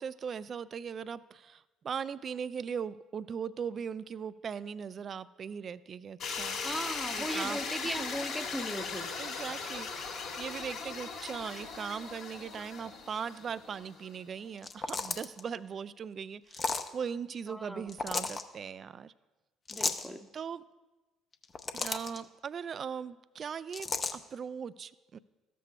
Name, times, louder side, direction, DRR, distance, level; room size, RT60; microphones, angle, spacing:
voice 1, 0.0-6.8 7.1-8.1 9.2-19.1 20.3-20.6 21.7-25.2, right 7 dB, 45° right, 16 dB, 0.3 m, -39 dB
sound 1, 6.2-14.2, left 5 dB, 65° left, 2.1 m, -39 dB
voice 2, 6.6-9.1 17.5-17.8 19.7-20.3, equal, ahead, 8 dB, 0.8 m, -38 dB
sound 2, 14.6-15.4 16.5-16.9 17.9-18.4 19.7-20.1 21.3-22.2 23.7-24.2, left 4 dB, 35° left, 0.7 m, -33 dB
14.0 x 7.6 x 2.2 m, 1.1 s
hypercardioid pair, 55°, 0 cm